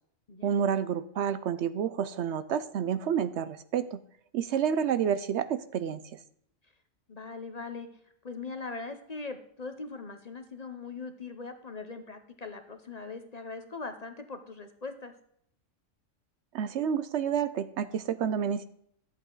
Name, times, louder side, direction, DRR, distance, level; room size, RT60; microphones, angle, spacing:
voice 1, 0.4-4.0 4.3-6.2 16.5-18.7, right 8 dB, 65° right, 13 dB, 0.8 m, -29 dB
voice 2, 7.1-7.9 8.2-15.1, left 4 dB, 40° left, 7 dB, 0.7 m, -40 dB
11.5 x 8.2 x 3.8 m, 0.68 s
omnidirectional pair, 1.4 m